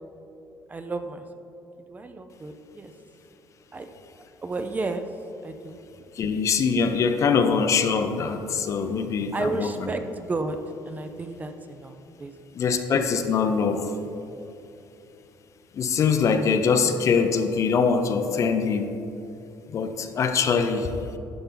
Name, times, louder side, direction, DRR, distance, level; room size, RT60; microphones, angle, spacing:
voice 1, 0.7-1.3 1.9-2.9 3.7-3.9 4.2-5.0 5.4-5.8 9.3-10.6 10.8-12.4, right 3 dB, 20° right, 7 dB, 0.5 m, -32 dB
voice 2, 6.2-9.7 12.5-13.9 15.7-18.9 19.7-20.9, left 5 dB, 45° left, 8 dB, 0.6 m, -23 dB
11.5 x 5.5 x 3.9 m, 2.8 s
cardioid pair, 120°, 7 cm